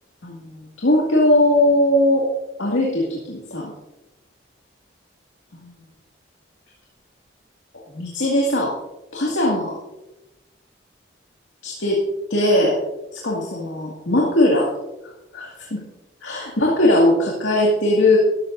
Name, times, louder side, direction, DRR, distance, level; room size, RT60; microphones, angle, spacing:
voice 1, 0.8-2.3 2.6-3.7 5.6-5.7 7.9-8.8 9.1-9.8 11.6-12.0 12.3-12.8 13.1-14.7 15.3-15.8 16.2-18.2, left 1 dB, 75° left, -2 dB, 2.2 m, -19 dB
13.0 x 12.5 x 2.7 m, 0.97 s
head